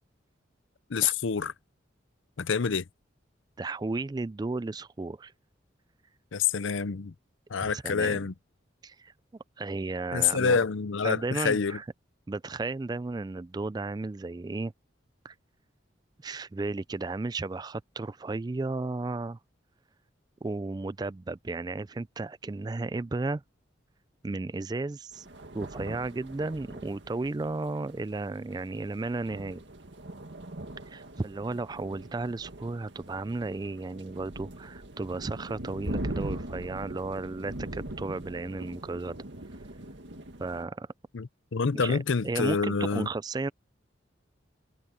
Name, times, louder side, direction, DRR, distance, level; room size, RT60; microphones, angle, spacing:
voice 1, 0.9-1.5 2.4-2.8 6.3-7.1 7.5-8.3 10.1-11.8 41.1-43.1, left 5 dB, 85° left, 0.6 m, -27 dB
voice 2, 3.6-5.3 7.5-8.2 8.8-9.1 9.6-10.6 11.0-11.9 12.3-14.7 15.2-15.3 16.2-19.4 20.4-23.4 24.2-25.3 25.5-29.6 30.9-39.2 40.4-40.9 41.7-43.5, right 3 dB, 20° right, 0.3 m, -34 dB
sound 1, 25.1-40.7, right 1 dB, 70° right, 1.9 m, -41 dB
head